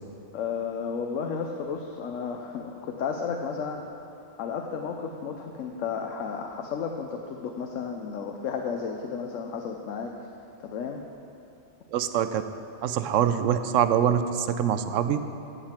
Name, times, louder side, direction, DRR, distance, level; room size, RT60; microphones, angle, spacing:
voice 1, 0.3-3.8 4.4-10.1 10.6-11.0, left 6 dB, 85° left, 3 dB, 1.1 m, -33 dB
voice 2, 11.9-12.4 12.8-15.2, right 9 dB, 85° right, 10 dB, 0.9 m, -24 dB
15.0 x 7.7 x 4.4 m, 2.8 s
omnidirectional pair, 1.3 m